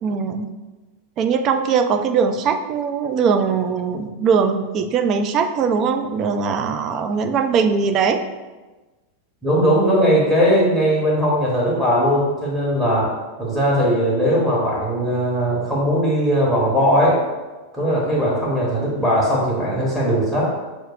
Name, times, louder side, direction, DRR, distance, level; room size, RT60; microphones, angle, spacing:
voice 1, 0.0-0.5 1.2-8.2, right 6 dB, 35° right, 7 dB, 0.3 m, -20 dB
voice 2, 9.4-13.1 13.4-17.2 17.7-20.5, equal, 10° right, -6 dB, 1.1 m, -19 dB
6.3 x 2.4 x 2.4 m, 1.2 s
figure-of-eight pair, 90°, 0 cm